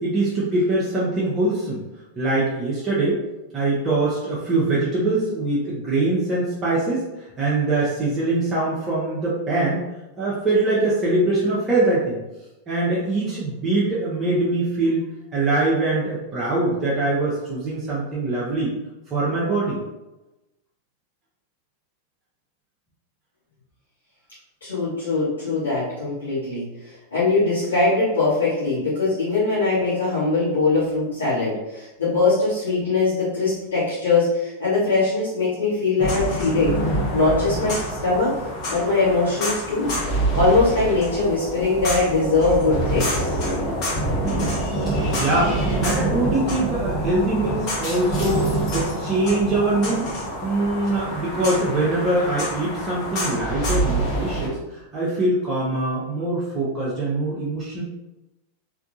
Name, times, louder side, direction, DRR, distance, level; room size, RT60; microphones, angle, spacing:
voice 1, 0.0-1.8 2.2-3.2 3.5-9.8 10.2-12.2 12.7-15.0 15.3-18.7 19.1-19.8 45.2-45.5 45.8-48.4 48.7-50.1 50.4-57.8, right 2 dB, 25° right, -7 dB, 0.8 m, -23 dB
voice 2, 24.6-36.8 37.1-38.4 38.7-39.9 40.3-43.3, left 3 dB, 70° left, -12 dB, 1.3 m, -21 dB
sound 1, 36.0-54.5, right 1 dB, 40° left, 1.1 m, -26 dB
3.5 x 2.7 x 2.6 m, 1.0 s
figure-of-eight pair, 90°, 0 cm